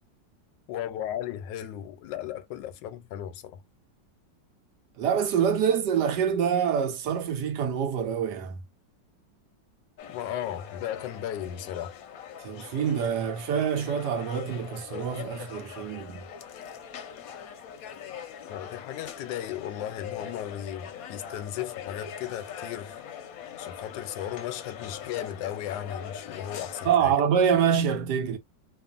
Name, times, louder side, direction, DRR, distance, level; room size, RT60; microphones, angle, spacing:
voice 1, 0.7-3.6 10.1-11.9 18.5-23.0 23.6-27.1, left 11 dB, 85° left, 1.2 m, -36 dB
voice 2, 5.0-8.6 12.4-16.2 26.9-28.4, right 7 dB, 75° right, 1.2 m, -26 dB
sound 1, 10.0-27.0, left 8 dB, 65° left, 1.0 m, -42 dB
2.9 x 2.3 x 2.4 m
omnidirectional pair, 1.9 m